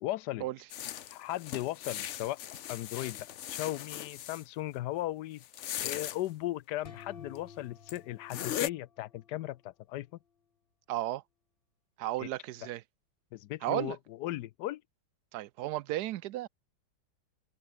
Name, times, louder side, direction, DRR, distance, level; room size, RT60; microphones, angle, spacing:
voice 1, 0.0-0.5 1.1-2.4 2.7-5.4 5.8-10.1 12.2-12.3 13.3-14.8, left 15 dB, 75° left, 1.1 m, -37 dB
sound 1, 0.7-4.4 5.4-6.2 7.3-7.4 7.9-8.0 8.3-8.7, left 11 dB, 60° left, 0.8 m, -38 dB
sound 2, 6.8-9.6, left 6 dB, 40° left, 1.1 m, -52 dB
voice 2, 10.9-11.2 12.0-12.8 13.6-14.0 15.3-16.5, right 15 dB, 75° right, 1.1 m, -34 dB
open air
omnidirectional pair, 1.9 m